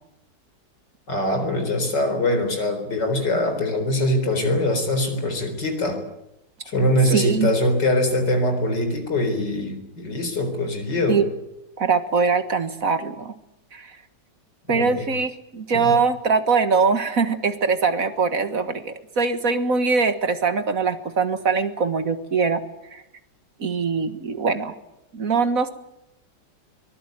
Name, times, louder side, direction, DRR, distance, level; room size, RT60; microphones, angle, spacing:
voice 1, 1.1-6.0 6.6-11.2 14.7-15.1 15.7-15.9, left 1 dB, 75° left, 6 dB, 4.8 m, -23 dB
voice 2, 7.1-7.5 11.1-11.3 11.8-13.3 13.7-13.9 14.7-22.6 22.9-23.0 23.6-24.7 25.1-25.7, right 5 dB, 50° right, 10 dB, 1.9 m, -22 dB
24.0 x 20.0 x 9.2 m, 0.86 s
omnidirectional pair, 1.9 m